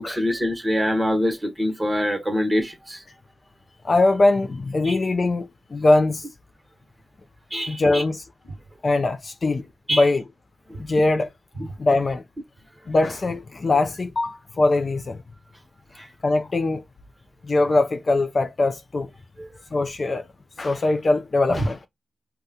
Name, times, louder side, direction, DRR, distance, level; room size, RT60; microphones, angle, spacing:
voice 1, 0.0-3.0 4.8-4.9 7.5-8.0 8.5-8.6 9.9-10.0 10.7-10.8 11.6-11.7 15.9-16.1 19.4-19.5 21.5-21.7, equal, 10° right, 1.2 m, -25 dB
voice 2, 3.8-6.2 7.7-8.2 8.8-9.6 9.9-10.2 10.8-11.3 11.8-12.2 12.9-15.2 16.2-16.8 17.5-19.1 19.7-20.3 20.6-21.8, left 2 dB, 40° left, 0.4 m, -21 dB
3.5 x 2.2 x 2.6 m
wide cardioid pair, 110°, 0 cm